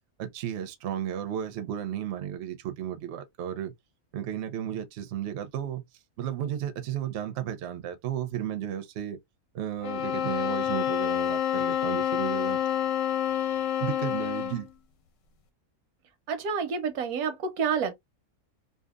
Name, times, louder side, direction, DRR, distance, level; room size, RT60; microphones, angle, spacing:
voice 1, 0.2-3.7 4.1-5.8 6.2-9.2 9.5-12.6 13.8-14.7, right 10 dB, 60° right, 0.7 m, -33 dB
sound 1, 9.8-14.7, left 10 dB, 65° left, 0.9 m, -28 dB
voice 2, 16.3-17.9, right 6 dB, 90° right, 1.1 m, -29 dB
2.7 x 2.3 x 2.3 m
omnidirectional pair, 1.5 m